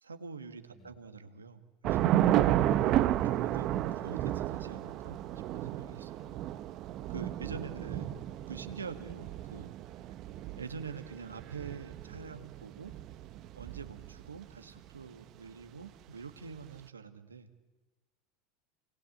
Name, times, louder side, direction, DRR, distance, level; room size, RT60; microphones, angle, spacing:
voice 1, 0.0-2.2 3.3-5.2 5.5-6.2 7.1-8.2 8.5-9.7 10.6-12.9 13.5-17.5, right 5 dB, 90° right, 8 dB, 1.7 m, -45 dB
Thunder / Rain, 1.8-14.4, right 13 dB, 50° right, 1.1 m, -32 dB
voice 2, 2.4-3.1 6.1-6.5 7.5-7.7 9.0-9.2, left 2 dB, 25° left, 6 dB, 4.9 m, -54 dB
27.5 x 20.0 x 8.6 m, 1.2 s
hypercardioid pair, 80°, 0 cm